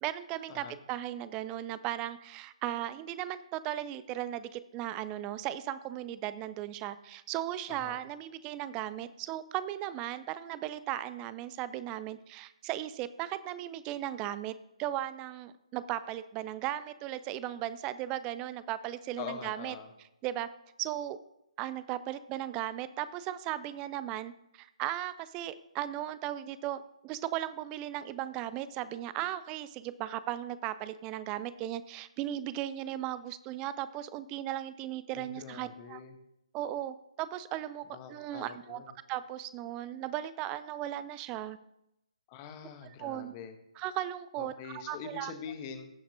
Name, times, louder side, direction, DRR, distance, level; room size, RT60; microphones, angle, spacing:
voice 1, 0.0-14.5 14.8-19.8 20.2-20.5 20.8-21.2 21.6-36.0 36.5-38.8 39.1-41.6 43.0-43.3 43.8-45.3, right 13 dB, 20° right, 15 dB, 0.4 m, -37 dB
voice 2, 19.2-19.9 35.1-36.2 37.9-38.9 42.3-43.5 44.4-45.9, left 7 dB, 25° left, 7 dB, 1.0 m, -44 dB
16.0 x 5.8 x 2.7 m, 0.84 s
figure-of-eight pair, 135°, 4 cm